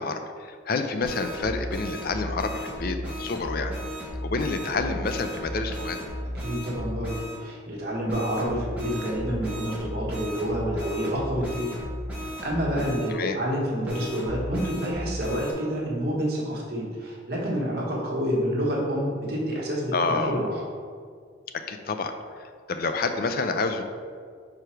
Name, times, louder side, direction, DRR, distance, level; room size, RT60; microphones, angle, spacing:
voice 1, 0.0-3.7 4.2-6.0 13.1-13.4 19.9-20.4 21.5-23.8, left 3 dB, 50° left, 7 dB, 0.4 m, -28 dB
sound 1, 1.0-7.4 8.1-13.1 13.8-15.5, equal, 5° right, 1.5 m, -35 dB
voice 2, 6.2-7.1 7.4-11.7 12.2-20.5, equal, 50° right, -4 dB, 1.4 m, -28 dB
4.9 x 4.8 x 4.5 m, 2.1 s
head